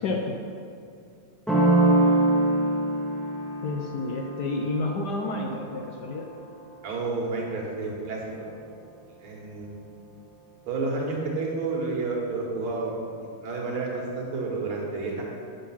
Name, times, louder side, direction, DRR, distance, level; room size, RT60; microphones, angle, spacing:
voice 1, 0.0-0.4 3.6-6.3, left 2 dB, 70° left, 2 dB, 1.0 m, -30 dB
sound 1, 1.5-7.0, right 2 dB, ahead, 0.4 m, -25 dB
voice 2, 6.8-8.5 9.2-9.8 10.7-13.0 13.4-15.2, right 3 dB, 80° right, -2 dB, 2.3 m, -30 dB
6.6 x 6.5 x 5.7 m, 2.4 s
omnidirectional pair, 2.3 m